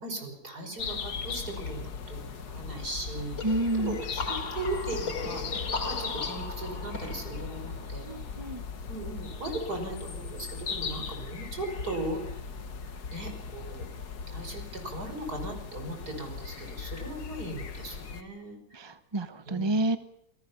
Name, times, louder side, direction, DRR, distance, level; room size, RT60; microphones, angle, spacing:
voice 1, 0.0-8.1 8.9-12.4 13.1-13.8 14.3-18.6 19.5-19.8, right 2 dB, 85° right, 4 dB, 6.1 m, -38 dB
sound 1, 0.8-18.2, left 5 dB, 90° left, 1.9 m, -38 dB
sound 2, 3.4-8.9, left 3 dB, 65° left, 3.6 m, -38 dB
voice 2, 3.4-4.0 8.0-8.6 18.7-20.0, right 2 dB, 20° right, 9 dB, 0.8 m, -29 dB
28.5 x 18.5 x 5.8 m, 0.74 s
omnidirectional pair, 1.6 m